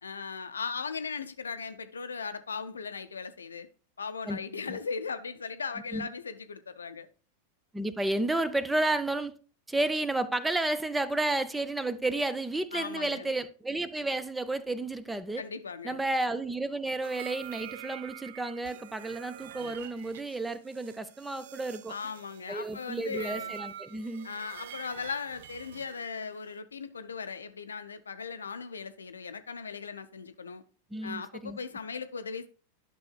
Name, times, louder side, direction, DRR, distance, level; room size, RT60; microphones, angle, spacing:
voice 1, 0.0-3.7 4.0-7.1 12.7-13.3 15.4-16.0 21.9-23.5 24.2-30.6 31.0-32.5, left 5 dB, 70° left, 0.6 m, -38 dB
voice 2, 7.7-9.3 9.7-15.4 15.8-21.9 22.5-24.3 30.9-31.6, right 2 dB, 10° right, 0.6 m, -31 dB
sound 1, 17.0-26.6, right 11 dB, 55° right, 0.5 m, -46 dB
11.0 x 6.2 x 2.2 m
figure-of-eight pair, 90°, 0 cm